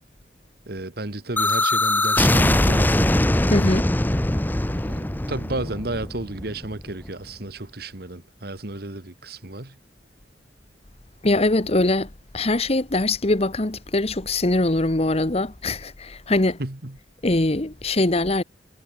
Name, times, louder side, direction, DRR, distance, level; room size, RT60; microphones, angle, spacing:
voice 1, 0.7-3.2 4.7-9.8 16.6-17.0, right 2 dB, 60° right, 1.9 m, -32 dB
sound 1, 1.4-7.1, left 1 dB, 10° left, 0.7 m, -21 dB
voice 2, 3.5-3.9 11.2-12.1 12.3-16.6 17.2-18.4, left 2 dB, 35° left, 1.2 m, -22 dB
head